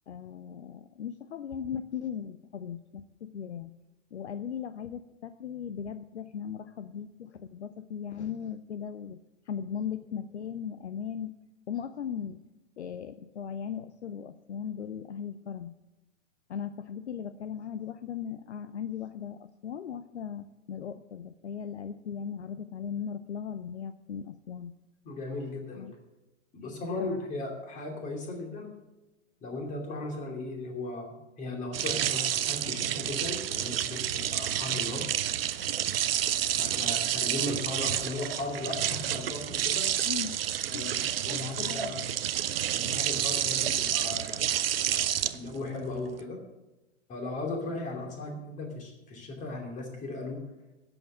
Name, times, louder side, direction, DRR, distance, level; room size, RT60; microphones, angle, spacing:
voice 1, 0.1-3.7 4.1-9.2 9.5-11.3 11.7-12.4 12.8-15.7 16.5-24.7 25.8-25.9 40.1-40.4 40.7-41.0 41.3-42.0, left 8 dB, 65° left, 12 dB, 0.7 m, -38 dB
voice 2, 25.0-25.9 26.5-28.8 29.4-35.1 36.6-39.9 40.7-42.0 42.7-44.5 44.8-45.0 45.3-46.4 47.1-50.4, left 2 dB, 20° left, 2 dB, 2.7 m, -37 dB
sound 1, 31.7-46.2, right 10 dB, 50° right, 0.6 m, -29 dB
11.0 x 8.0 x 7.4 m, 1.0 s
figure-of-eight pair, 115°, 37 cm